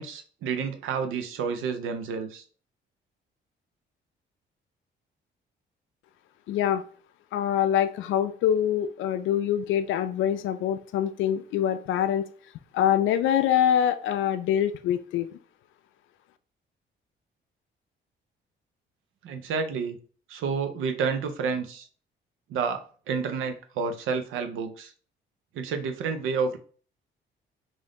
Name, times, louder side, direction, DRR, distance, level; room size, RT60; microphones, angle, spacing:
voice 1, 0.0-2.4 19.2-20.0 20.3-21.9 22.5-24.9 25.5-26.6, right 5 dB, 85° right, 8 dB, 0.7 m, -30 dB
voice 2, 6.5-6.8 7.3-12.3 12.7-15.3, left 10 dB, 80° left, 10 dB, 0.4 m, -24 dB
3.5 x 2.6 x 3.6 m, 0.41 s
cardioid pair, 90°, 20 cm